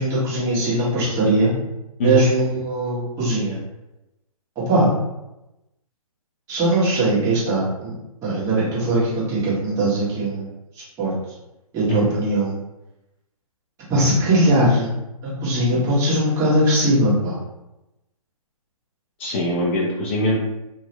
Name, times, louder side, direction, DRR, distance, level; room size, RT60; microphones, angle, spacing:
voice 1, 0.0-1.5 2.0-3.6 4.6-4.9 6.5-7.9 8.2-10.5 11.0-11.1 11.7-12.5 13.9-14.9 15.2-17.4, right 1 dB, 15° right, -10 dB, 1.3 m, -20 dB
voice 2, 19.2-20.4, left 1 dB, 20° left, -3 dB, 0.3 m, -22 dB
2.9 x 2.1 x 3.0 m, 0.95 s
figure-of-eight pair, 135°, 19 cm